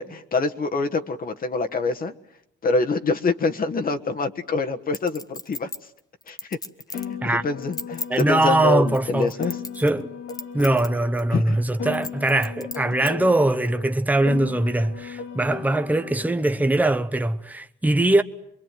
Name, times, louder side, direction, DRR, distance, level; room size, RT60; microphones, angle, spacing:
voice 1, 0.0-2.1 2.6-5.7 6.3-6.6 6.9-7.0 7.4-9.6 11.3-11.6 13.0-13.1, left 3 dB, 45° left, 1.5 m, -25 dB
Chink clink, 4.9-7.1 7.6-8.2 8.9-10.0 10.3-10.9 11.2-11.3 11.9-13.1 13.7-13.8, left 2 dB, 20° left, 1.3 m, -35 dB
Piano, 6.9-11.4 11.8-16.4, left 7 dB, 75° left, 2.9 m, -36 dB
voice 2, 8.1-9.3 9.8-10.1 10.5-18.2, right 2 dB, 10° right, 1.1 m, -21 dB
25.5 x 22.0 x 9.3 m
cardioid pair, 90°, 20 cm